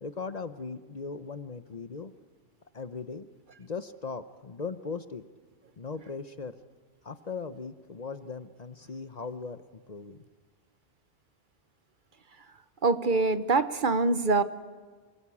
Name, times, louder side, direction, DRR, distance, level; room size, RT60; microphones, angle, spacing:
voice 1, 0.0-2.1 2.7-3.3 3.6-5.2 5.8-6.6 7.0-10.2, left 4 dB, 45° left, 12 dB, 0.9 m, -38 dB
voice 2, 12.8-14.4, right 3 dB, 55° right, 12 dB, 1.1 m, -24 dB
28.0 x 19.5 x 8.5 m, 1.5 s
omnidirectional pair, 1.0 m